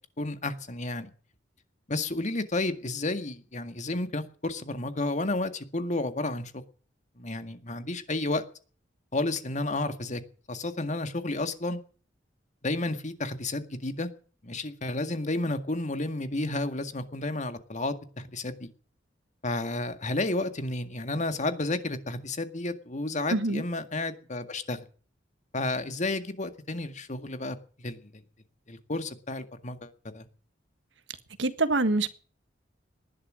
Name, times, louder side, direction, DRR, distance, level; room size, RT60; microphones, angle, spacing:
voice 1, 0.2-1.1 1.9-6.6 7.2-8.4 9.1-10.2 10.5-11.8 12.6-14.1 14.4-18.7 19.4-24.8 25.5-28.2 28.7-30.3, left 2 dB, 40° left, 1.9 m, -31 dB
voice 2, 23.3-23.6 31.4-32.1, right 2 dB, 70° right, 1.7 m, -25 dB
19.5 x 11.5 x 6.4 m
head